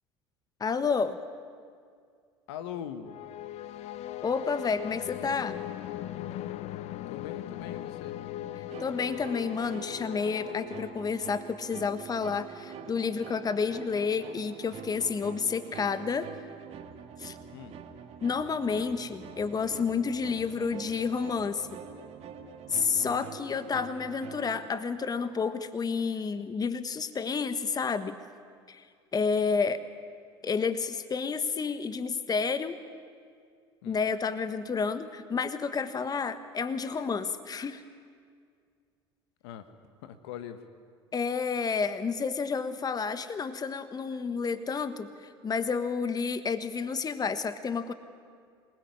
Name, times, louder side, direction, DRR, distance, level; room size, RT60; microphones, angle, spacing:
voice 1, 0.6-1.2 4.2-5.6 8.8-16.3 17.2-17.3 18.2-21.7 22.7-28.1 28.7-28.8 29.1-29.8 30.4-32.8 33.8-37.8 41.1-47.9, left 5 dB, 25° left, 11 dB, 1.4 m, -30 dB
voice 2, 2.5-3.2 7.1-8.1 17.5-17.8 22.9-23.3 33.8-34.0 39.4-39.7 40.0-40.7, left 9 dB, 70° left, 10 dB, 1.6 m, -41 dB
sound 1, 3.0-11.5, left 13 dB, 50° left, 0.9 m, -39 dB
sound 2, 8.7-24.7, right 7 dB, 50° right, 2.3 m, -45 dB
26.0 x 20.5 x 9.7 m, 2.1 s
hypercardioid pair, 70°, 14 cm